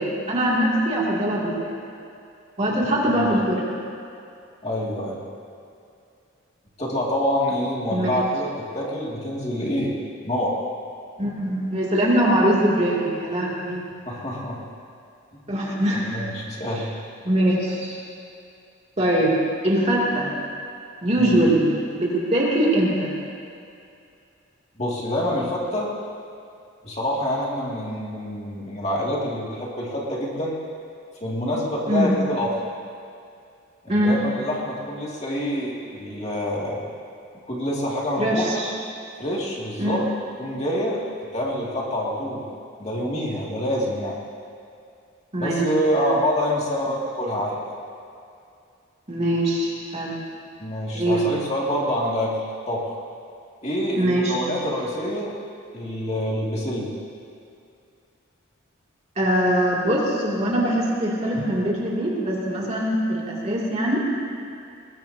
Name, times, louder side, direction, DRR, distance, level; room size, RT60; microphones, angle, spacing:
voice 1, 0.0-1.7 2.6-3.6 7.9-8.2 11.2-13.8 15.5-16.1 17.2-18.0 19.0-19.4 19.6-20.3 21.0-23.1 31.9-32.1 33.9-34.2 38.2-38.7 39.8-40.0 45.3-45.7 45.9-46.1 49.1-50.1 50.9-51.2 53.9-54.3 59.2-64.1, right 1 dB, 30° right, -5 dB, 2.7 m, -22 dB
voice 2, 4.6-5.3 6.8-10.0 10.2-10.5 14.1-14.6 16.1-16.9 21.2-21.4 24.8-25.9 26.8-30.6 31.2-32.5 33.8-36.8 37.5-38.5 39.2-40.0 40.4-41.0 41.3-42.5 42.8-44.2 45.4-47.7 50.6-53.0 53.6-55.3 55.7-56.9, equal, 30° left, -4 dB, 2.4 m, -26 dB
21.5 x 21.0 x 2.9 m, 2.5 s
head